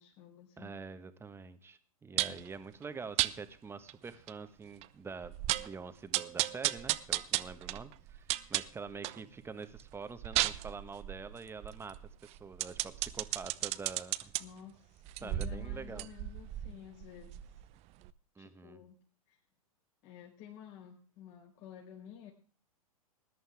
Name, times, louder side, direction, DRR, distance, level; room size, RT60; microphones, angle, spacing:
voice 1, 0.0-0.7 2.1-2.5 4.1-4.2 14.4-17.6 18.4-19.0 19.3-19.4 20.0-22.3, left 9 dB, 45° left, -2 dB, 4.7 m, -52 dB
voice 2, 0.6-12.0 12.2-14.3 15.2-16.1 18.3-18.8, right 5 dB, 15° right, 10 dB, 1.5 m, -46 dB
sound 1, 2.2-2.5 3.2-3.3 3.9-4.0 4.3-4.4 4.8-4.9 5.2-5.7 6.1-9.2 9.6-14.4 15.0-17.7 18.0-18.1, right 16 dB, 35° right, 0.8 m, -34 dB
20.0 x 11.0 x 3.6 m, 0.41 s
figure-of-eight pair, 105°, 19 cm